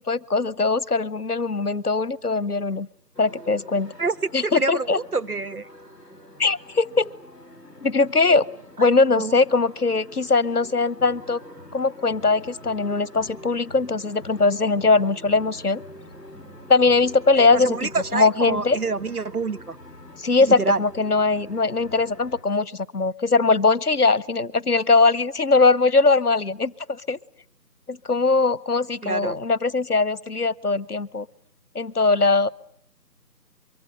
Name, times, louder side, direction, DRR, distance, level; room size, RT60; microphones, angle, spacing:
voice 1, 0.1-2.9 3.2-3.9 4.3-5.0 6.4-7.1 7.8-8.5 8.8-11.4 11.7-15.8 16.7-18.8 20.2-27.2 27.9-31.3 31.7-32.5, left 3 dB, 65° left, 1.0 m, -21 dB
sound 1, 3.1-22.4, left 1 dB, 5° right, 3.0 m, -45 dB
voice 2, 4.4-5.7 8.8-8.9 9.2-9.3 17.3-19.8 20.6-20.8 29.0-29.4, right 3 dB, 60° right, 1.1 m, -27 dB
24.0 x 24.0 x 7.7 m
figure-of-eight pair, 175°, 49 cm